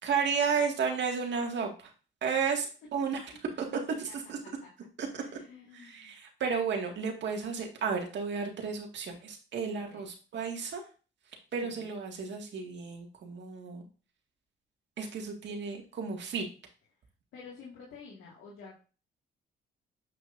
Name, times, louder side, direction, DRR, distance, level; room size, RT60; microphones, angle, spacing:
voice 1, 0.0-1.9 2.2-3.3 3.9-4.4 5.0-5.2 5.7-10.8 11.5-13.8 15.0-16.4, right 5 dB, 65° right, 2 dB, 1.9 m, -33 dB
voice 2, 5.1-6.2 9.7-10.0 11.6-11.9 17.3-18.8, left 5 dB, 85° left, -5 dB, 2.0 m, -50 dB
7.8 x 6.0 x 2.6 m, 0.35 s
cardioid pair, 90°, 20 cm